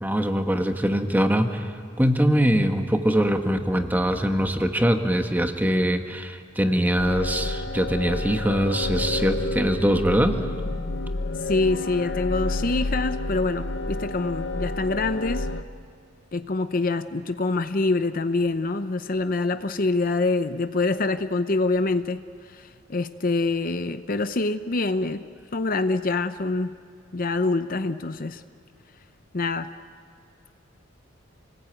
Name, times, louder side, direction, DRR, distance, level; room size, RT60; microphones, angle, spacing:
voice 1, 0.0-1.7 2.0-10.4, equal, 10° right, 5 dB, 1.4 m, -22 dB
sound 1, 7.0-15.6, left 2 dB, 65° left, 1.1 m, -29 dB
voice 2, 11.5-15.5 16.3-26.8 27.1-28.4 29.3-29.7, left 3 dB, 45° left, 10 dB, 0.7 m, -25 dB
27.5 x 20.0 x 9.0 m, 2.2 s
head